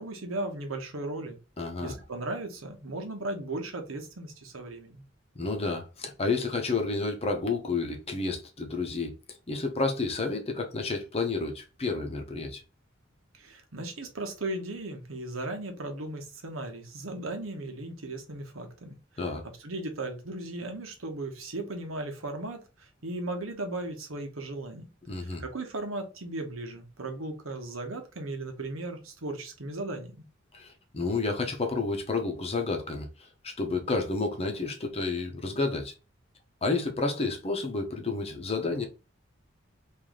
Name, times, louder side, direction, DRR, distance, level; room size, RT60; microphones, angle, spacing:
voice 1, 0.0-1.4 1.8-5.0 13.3-19.0 19.6-24.9 25.2-30.1, right 2 dB, 80° right, 1.0 m, -36 dB
voice 2, 1.6-1.9 5.3-9.1 9.5-12.6 19.2-19.4 25.1-25.4 30.5-35.9 36.6-38.9, left 3 dB, 30° left, 0.8 m, -30 dB
3.2 x 2.6 x 3.8 m
head